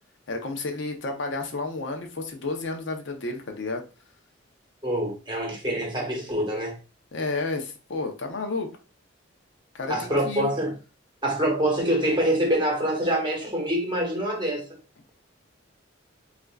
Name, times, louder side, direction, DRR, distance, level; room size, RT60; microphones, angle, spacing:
voice 1, 0.3-3.8 7.1-8.7 9.7-10.5, left 3 dB, 65° left, 0.6 m, -31 dB
voice 2, 4.8-6.7 9.9-10.7 11.2-14.6, right 1 dB, 25° right, 0.9 m, -25 dB
4.2 x 2.4 x 2.2 m
head